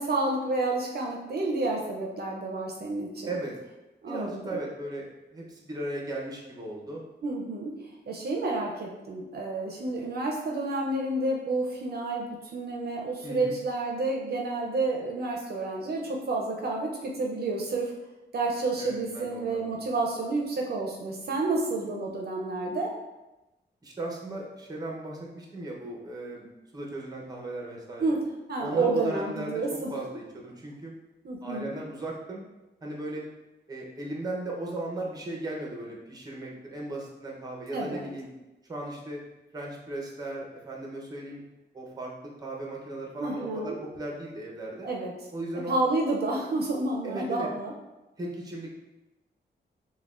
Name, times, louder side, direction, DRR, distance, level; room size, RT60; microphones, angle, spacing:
voice 1, 0.0-3.3 4.0-4.6 7.2-7.7 8.1-17.9 18.3-22.9 28.0-29.9 31.2-31.8 37.7-38.1 43.2-43.8 44.8-45.1 45.7-47.7, right 2 dB, 60° right, 0 dB, 0.5 m, -30 dB
voice 2, 4.1-7.0 13.2-13.6 18.8-19.8 23.8-26.5 26.7-28.1 28.6-31.0 31.4-32.4 32.8-33.3 33.7-38.3 38.7-39.2 39.5-41.4 41.7-44.9 45.3-45.8 47.0-47.5 48.2-48.7, right 2 dB, 20° right, -2 dB, 0.7 m, -37 dB
5.8 x 2.2 x 2.4 m, 1.0 s
wide cardioid pair, 140°, 19 cm